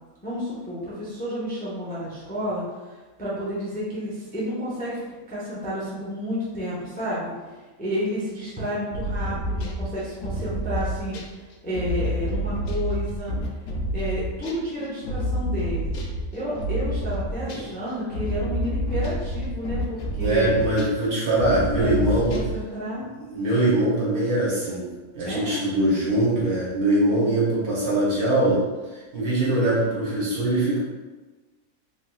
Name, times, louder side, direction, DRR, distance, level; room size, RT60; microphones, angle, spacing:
voice 1, 0.2-7.3 7.8-11.2 11.6-13.3 13.9-15.9 16.3-20.6 21.5-23.0 25.2-25.6, equal, 10° left, -8 dB, 0.4 m, -31 dB
sound 1, 8.9-14.7 15.0-17.8 18.1-21.0 21.4-22.6, equal, 65° left, 0.8 m, -29 dB
voice 2, 20.2-22.3 23.2-24.9 25.1-28.6 28.9-30.8, right 1 dB, 80° right, -7 dB, 1.6 m, -22 dB
3.1 x 2.9 x 2.3 m, 1.2 s
omnidirectional pair, 1.6 m